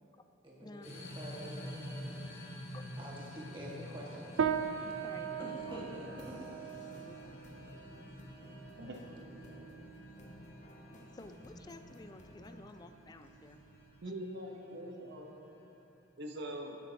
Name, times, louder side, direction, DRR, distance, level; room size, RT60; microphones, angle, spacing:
voice 1, 0.4-2.4 3.0-4.6 5.4-6.6 9.4-9.6, right 1 dB, 25° right, -5 dB, 1.7 m, -47 dB
sound 1, 0.8-15.9, equal, 85° left, 2.0 m, -49 dB
sound 2, 4.4-14.0, right 7 dB, 75° right, 0.4 m, -40 dB
voice 2, 4.8-5.8 6.1-6.2 7.0-7.4 11.1-13.6, left 2 dB, 20° left, 9 dB, 0.3 m, -52 dB
sound 3, 5.6-12.6, left 1 dB, 40° left, 0.9 m, -55 dB
voice 3, 14.0-15.4 16.2-16.8, right 1 dB, 55° right, 2 dB, 1.0 m, -43 dB
16.0 x 7.5 x 2.9 m, 2.9 s
head